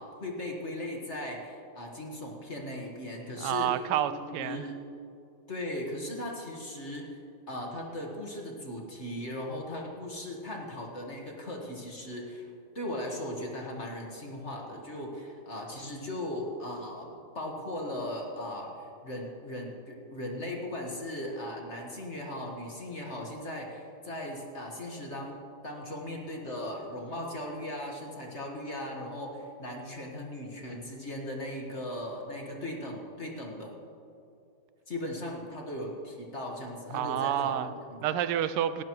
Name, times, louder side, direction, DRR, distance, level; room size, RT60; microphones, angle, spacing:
voice 1, 0.0-3.7 4.1-4.8 5.5-7.1 7.5-12.5 12.7-33.7 34.9-38.0, left 1 dB, 35° left, 0 dB, 1.7 m, -38 dB
voice 2, 3.4-4.7 36.9-37.7 38.0-38.8, right 11 dB, 85° right, 12 dB, 1.5 m, -29 dB
18.0 x 17.5 x 3.1 m, 2.7 s
omnidirectional pair, 2.4 m